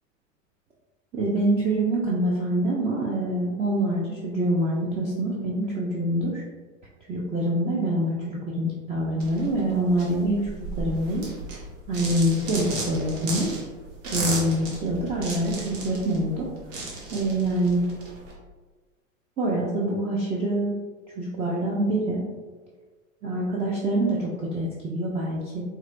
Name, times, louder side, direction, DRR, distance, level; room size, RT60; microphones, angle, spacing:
voice 1, 1.1-6.4 7.1-10.4 10.8-11.3 11.9-13.5 14.0-16.5 17.1-17.9 19.4-20.8 21.2-22.2 23.2-25.6, right 1 dB, 15° right, -4 dB, 0.3 m, -25 dB
sound 1, 9.2-18.3, right 2 dB, 70° right, 1.3 m, -35 dB
4.2 x 2.2 x 2.4 m, 1.3 s
hypercardioid pair, 100°, 40 cm